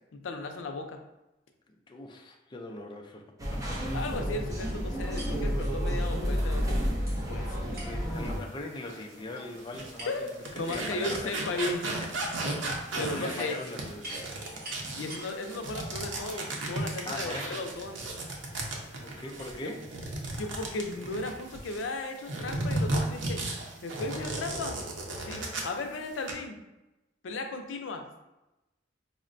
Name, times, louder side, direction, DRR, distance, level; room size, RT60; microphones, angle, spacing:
voice 1, 0.1-1.0 3.9-7.6 10.1-10.3 10.6-11.8 13.0-13.6 15.0-18.1 19.6-19.7 20.4-23.4 23.8-24.8 25.2-26.6 27.2-28.0, left 2 dB, 85° left, 5 dB, 0.4 m, -36 dB
voice 2, 1.7-3.8 7.7-10.3 10.6-11.5 12.5-14.3 17.0-17.6 19.0-19.9, left 2 dB, 25° left, 2 dB, 0.4 m, -41 dB
sound 1, 3.4-8.4, equal, 20° right, 0.6 m, -30 dB
sound 2, 4.7-20.1, right 1 dB, 55° right, 1.3 m, -50 dB
sound 3, 8.9-9.0 9.6-21.8 22.3-25.8 26.1-26.3, right 2 dB, 85° right, 0.7 m, -35 dB
5.0 x 2.1 x 2.5 m, 0.98 s
head